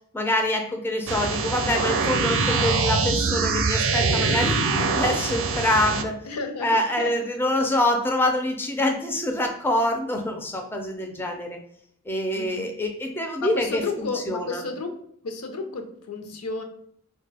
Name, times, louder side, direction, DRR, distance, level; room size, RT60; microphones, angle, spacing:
voice 1, 0.1-6.2 6.6-11.6 12.1-14.6, left 1 dB, 10° left, 3 dB, 0.3 m, -25 dB
sound 1, 1.1-6.0, right 4 dB, 60° right, 0.4 m, -23 dB
voice 2, 6.2-7.1 12.3-12.7 13.4-15.0 15.2-16.6, left 3 dB, 80° left, 4 dB, 0.6 m, -32 dB
4.1 x 2.1 x 3.2 m, 0.68 s
head